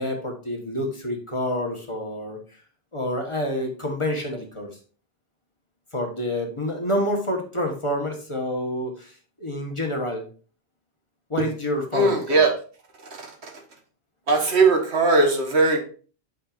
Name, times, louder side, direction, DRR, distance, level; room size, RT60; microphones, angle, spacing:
voice 1, 0.0-2.4 2.9-4.7 5.9-9.1 9.4-10.2 11.3-12.4, left 1 dB, 30° left, 2 dB, 1.2 m, -28 dB
voice 2, 11.9-12.5 13.1-13.5 14.3-15.8, right 3 dB, 80° right, 3 dB, 1.5 m, -19 dB
8.6 x 5.0 x 2.4 m, 0.40 s
omnidirectional pair, 1.1 m